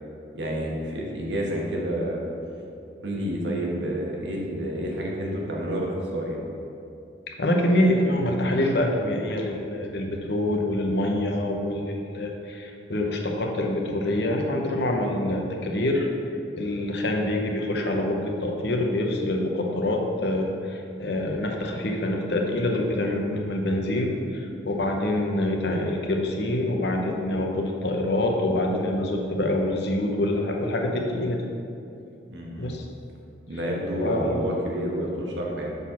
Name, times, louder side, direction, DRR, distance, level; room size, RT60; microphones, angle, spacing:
voice 1, 0.3-2.3 3.0-6.4 32.3-32.8 33.5-35.7, equal, 80° right, -2 dB, 1.3 m, -29 dB
voice 2, 7.4-16.1 16.6-31.5 32.6-32.8 34.0-34.4, left 1 dB, 65° left, 1 dB, 0.9 m, -26 dB
6.7 x 4.2 x 5.6 m, 2.6 s
head